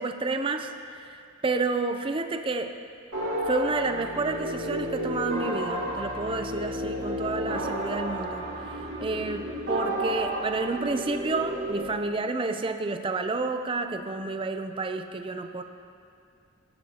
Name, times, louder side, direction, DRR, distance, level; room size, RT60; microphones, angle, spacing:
voice 1, 0.0-2.7 3.5-8.7 9.0-15.6, right 3 dB, 25° right, 7 dB, 0.4 m, -30 dB
sound 1, 3.1-11.8, right 1 dB, 85° right, 2.4 m, -32 dB
16.5 x 12.0 x 2.9 m, 2.4 s
head